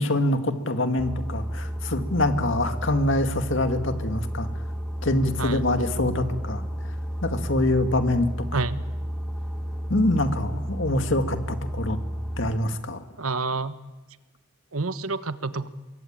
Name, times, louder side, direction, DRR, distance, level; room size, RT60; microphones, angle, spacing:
voice 1, 0.0-4.5 5.0-6.6 7.2-8.3 9.9-12.0 12.4-13.0, left 1 dB, 60° left, 7 dB, 2.1 m, -25 dB
Boat Water vehicle, 1.0-12.5, equal, ahead, 2.4 m, -32 dB
voice 2, 13.2-13.7 14.7-15.7, right 3 dB, 90° right, 12 dB, 1.2 m, -28 dB
25.0 x 22.0 x 9.0 m, 1.1 s
head